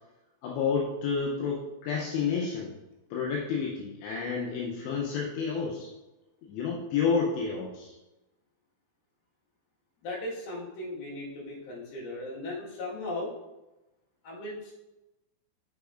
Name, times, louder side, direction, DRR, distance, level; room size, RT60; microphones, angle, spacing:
voice 1, 0.4-2.7 3.1-5.9 6.4-7.9, left 5 dB, 80° left, -2 dB, 2.7 m, -30 dB
voice 2, 10.0-13.3 14.2-14.7, left 2 dB, 65° left, -5 dB, 3.1 m, -37 dB
6.7 x 6.2 x 2.4 m, 1.0 s
omnidirectional pair, 5.4 m